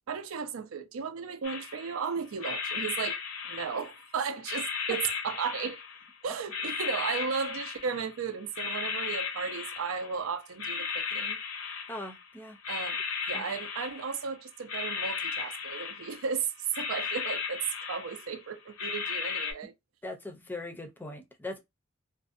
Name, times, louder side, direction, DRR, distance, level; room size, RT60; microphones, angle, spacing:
voice 1, 0.1-3.2 3.4-5.8 6.2-11.4 12.7-13.0 13.3-19.7, right 6 dB, 80° right, 0.5 m, -35 dB
sound 1, 1.4-2.0 2.4-4.1 4.5-6.1 6.5-8.1 8.5-10.2 10.6-12.3 12.6-14.3 14.7-16.3 16.7-18.4 18.8-19.5, left 5 dB, 80° left, 0.7 m, -35 dB
voice 2, 11.9-12.6 13.3-13.4 20.0-21.6, left 2 dB, 10° left, 0.5 m, -40 dB
2.5 x 2.1 x 2.5 m
head